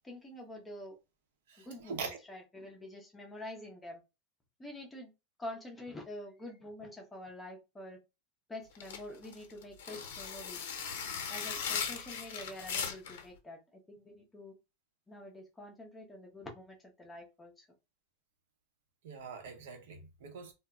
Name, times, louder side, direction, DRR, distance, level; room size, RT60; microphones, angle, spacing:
voice 1, 0.0-1.0 1.6-4.0 4.6-5.1 5.4-8.0 8.5-10.7 11.3-14.6 15.1-17.7, left 1 dB, 10° left, 0.5 m, -47 dB
voice 2, 1.5-2.2 19.0-20.5, right 5 dB, 75° right, 0.8 m, -43 dB
sound 1, 8.8-13.2, left 7 dB, 85° left, 0.7 m, -38 dB
2.2 x 2.0 x 3.5 m
supercardioid pair, 170°, 0 cm